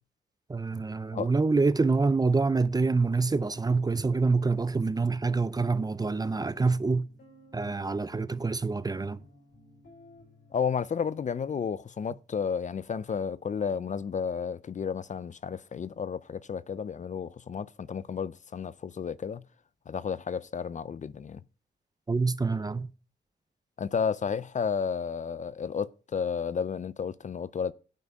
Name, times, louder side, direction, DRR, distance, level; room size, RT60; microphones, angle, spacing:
voice 1, 0.5-7.1 7.5-9.2 22.1-22.9, right 4 dB, 20° right, 0.5 m, -26 dB
sound 1, 3.5-11.3, left 1 dB, 70° left, 5.2 m, -56 dB
voice 2, 10.5-19.4 19.9-21.4 23.8-27.7, left 6 dB, 45° left, 0.4 m, -32 dB
9.1 x 6.1 x 5.4 m
wide cardioid pair, 100°, 18 cm